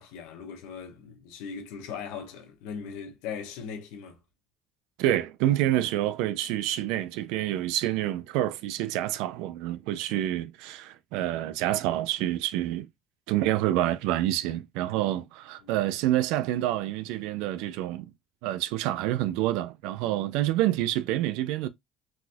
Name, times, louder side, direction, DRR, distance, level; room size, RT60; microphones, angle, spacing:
voice 1, 0.0-4.2 15.6-15.7, left 6 dB, 85° left, 1.0 m, -39 dB
voice 2, 5.0-12.9 13.3-18.1 18.4-21.7, right 13 dB, 80° right, 0.4 m, -27 dB
4.0 x 2.6 x 2.2 m
supercardioid pair, 105°, 0 cm